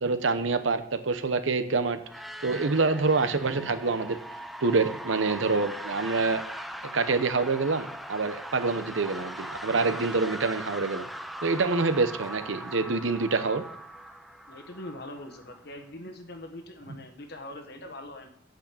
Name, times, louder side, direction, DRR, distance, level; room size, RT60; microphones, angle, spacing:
voice 1, 0.0-2.0 2.4-4.2 4.6-6.4 6.8-11.1 11.4-13.6, right 3 dB, 80° right, 10 dB, 0.9 m, -26 dB
sound 1, 2.0-15.8, right 1 dB, ahead, 0.4 m, -40 dB
voice 2, 14.5-18.3, left 1 dB, 55° left, 6 dB, 1.3 m, -42 dB
8.7 x 6.4 x 8.2 m, 0.66 s
head